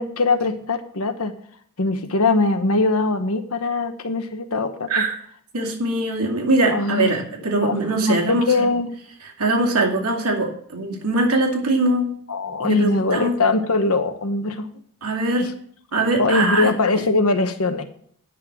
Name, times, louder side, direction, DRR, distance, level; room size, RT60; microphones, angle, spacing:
voice 1, 0.0-1.3 1.8-5.0 6.7-7.1 7.6-7.8 8.1-8.9 12.3-14.7 16.2-17.8, left 3 dB, 70° left, 8 dB, 1.1 m, -21 dB
voice 2, 4.9-5.2 5.5-8.5 9.4-12.2 12.6-13.4 15.0-15.5 15.9-16.7 17.0-17.1, right 2 dB, 90° right, 1 dB, 2.4 m, -22 dB
9.7 x 6.1 x 6.1 m, 0.62 s
head